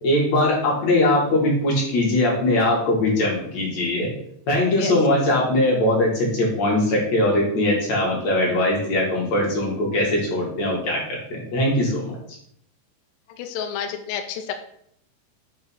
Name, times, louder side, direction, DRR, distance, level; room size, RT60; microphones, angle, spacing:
voice 1, 0.0-4.1 4.5-12.2, left 1 dB, 50° left, -3 dB, 2.1 m, -21 dB
voice 2, 13.4-14.6, left 8 dB, 85° left, 5 dB, 3.3 m, -29 dB
8.9 x 3.0 x 5.5 m, 0.69 s
omnidirectional pair, 5.7 m